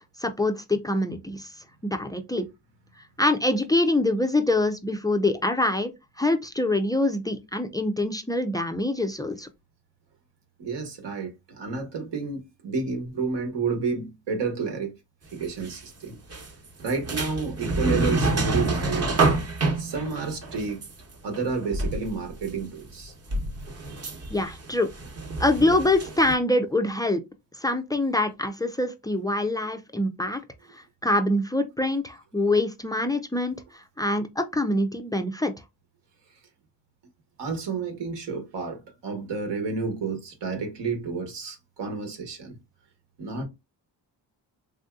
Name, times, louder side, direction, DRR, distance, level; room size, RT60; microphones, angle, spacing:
voice 1, 0.2-1.5 1.8-2.4 3.2-5.9 6.2-9.5 24.3-24.9 25.4-27.2 27.6-30.4 30.7-35.5, left 2 dB, 10° left, 0.3 m, -25 dB
voice 2, 10.6-14.9 15.3-16.2 16.8-19.2 19.8-20.8 21.2-23.1 23.9-24.4 37.4-42.6 43.2-43.4, right 4 dB, 70° right, 1.2 m, -30 dB
sound 1, 15.4-15.8 16.3-22.6 22.9-26.3, right 2 dB, 35° right, 0.9 m, -28 dB
3.4 x 2.6 x 2.3 m
cardioid pair, 80°, 44 cm